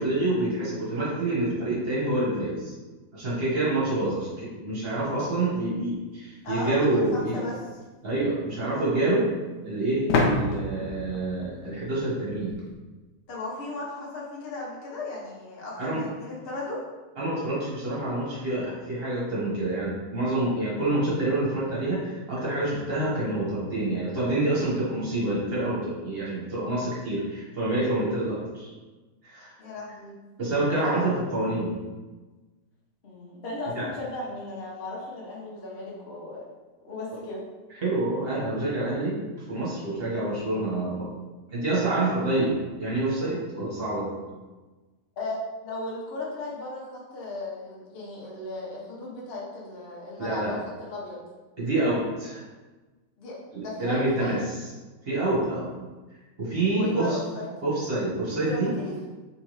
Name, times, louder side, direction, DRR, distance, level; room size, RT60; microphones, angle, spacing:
voice 1, 0.0-2.7 3.1-7.4 8.0-9.3 9.6-12.6 15.8-16.0 17.2-28.7 29.2-29.5 30.4-31.8 33.7-33.9 37.8-39.2 39.5-41.2 41.5-44.4 50.2-50.5 51.6-52.4 53.8-54.4 55.0-55.9 56.4-57.2 57.6-58.7, right 2 dB, 35° right, -7 dB, 1.5 m, -27 dB
voice 2, 6.4-7.6 13.3-16.9 29.6-30.1 30.8-31.2 33.0-36.5 36.8-37.4 45.2-51.2 53.2-53.4 53.6-54.4 56.7-57.5 58.4-59.1, left 2 dB, 40° left, -5 dB, 1.0 m, -36 dB
sound 1, 7.1-7.2 10.1-12.7, left 3 dB, 75° left, 1.2 m, -28 dB
3.7 x 3.3 x 3.2 m, 1.2 s
omnidirectional pair, 1.8 m